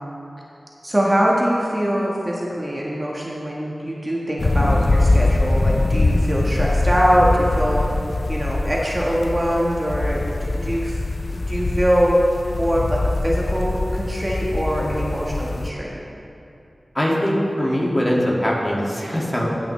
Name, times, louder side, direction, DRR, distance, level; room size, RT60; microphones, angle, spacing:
voice 1, 0.8-7.8 8.3-10.9 11.3-12.2 12.5-16.0, equal, 25° right, -4 dB, 1.4 m, -22 dB
sound 1, 4.4-15.7, left 2 dB, 60° left, 0.4 m, -22 dB
voice 2, 16.9-19.5, equal, 25° left, -4 dB, 2.0 m, -22 dB
18.0 x 5.9 x 3.2 m, 2.8 s
wide cardioid pair, 50°, 0 cm